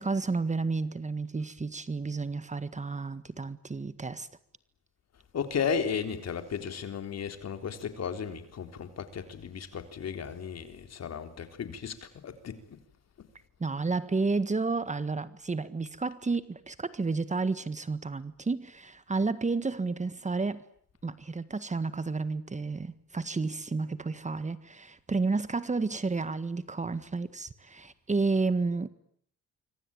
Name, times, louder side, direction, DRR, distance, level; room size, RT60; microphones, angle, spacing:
voice 1, 0.0-4.3 13.6-20.6 21.0-28.9, right 3 dB, 25° right, 1.6 m, -31 dB
voice 2, 5.3-12.0 12.2-12.6, left 6 dB, 55° left, 3.8 m, -34 dB
26.0 x 24.0 x 8.9 m
cardioid pair, 90°, 30 cm